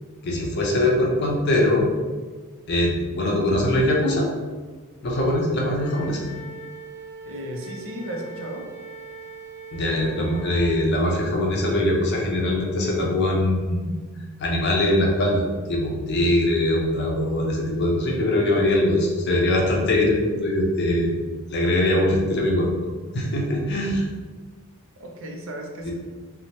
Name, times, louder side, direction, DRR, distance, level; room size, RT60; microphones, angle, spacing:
voice 1, 0.2-1.9 2.7-4.3 5.0-6.2 9.7-13.9 14.4-15.4 15.7-21.1 21.5-22.7 23.1-24.1 25.8-25.9, left 1 dB, 50° left, -2 dB, 0.5 m, -22 dB
Wind instrument woodwind instrument, 5.7-10.9, right 3 dB, 10° left, 0.6 m, -41 dB
voice 2, 7.3-8.7 25.0-25.9, equal, 60° right, 1 dB, 0.4 m, -34 dB
2.7 x 2.0 x 2.9 m, 1.4 s
head